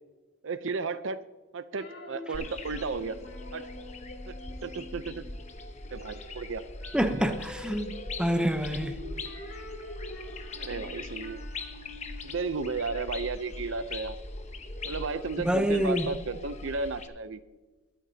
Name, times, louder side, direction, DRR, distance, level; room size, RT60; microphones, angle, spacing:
voice 1, 0.4-1.2 1.5-3.2 3.5-3.7 4.3-5.2 5.9-6.6 10.6-11.5 12.2-14.1 14.8-17.4, right 4 dB, 70° right, 0.6 m, -34 dB
sound 1, 1.8-5.5 5.8-13.6, left 2 dB, 90° left, 3.4 m, -46 dB
sound 2, 2.3-17.1, left 2 dB, 35° left, 1.0 m, -41 dB
voice 2, 6.9-7.9 8.2-9.0 15.4-16.1, equal, 5° right, 0.7 m, -26 dB
22.5 x 9.0 x 2.8 m
head